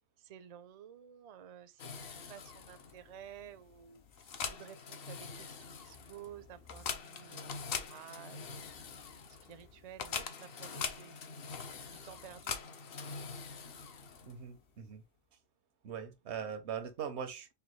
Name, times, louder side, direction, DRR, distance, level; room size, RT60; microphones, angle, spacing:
voice 1, 0.2-8.7 9.0-9.1 9.4-11.1 11.9-12.7, right 9 dB, 50° right, 0.4 m, -53 dB
sound 1, 1.8-14.5, left 6 dB, 65° left, 0.8 m, -43 dB
voice 2, 14.2-15.0 15.8-17.5, right 7 dB, 85° right, 1.1 m, -41 dB
5.6 x 2.2 x 3.1 m
omnidirectional pair, 1.1 m